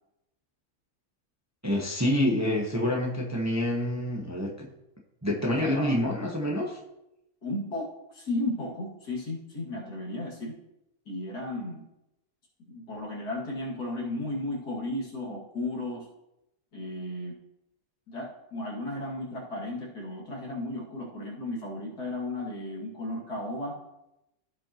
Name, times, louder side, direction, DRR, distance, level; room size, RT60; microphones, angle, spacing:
voice 1, 1.6-4.7 5.2-6.8, left 1 dB, 10° right, -1 dB, 0.9 m, -27 dB
voice 2, 5.4-6.0 7.4-10.6 11.1-11.9 12.7-16.1 16.7-17.4 18.1-23.8, left 1 dB, 80° left, -4 dB, 2.8 m, -34 dB
15.5 x 5.3 x 2.9 m, 0.89 s
omnidirectional pair, 1.7 m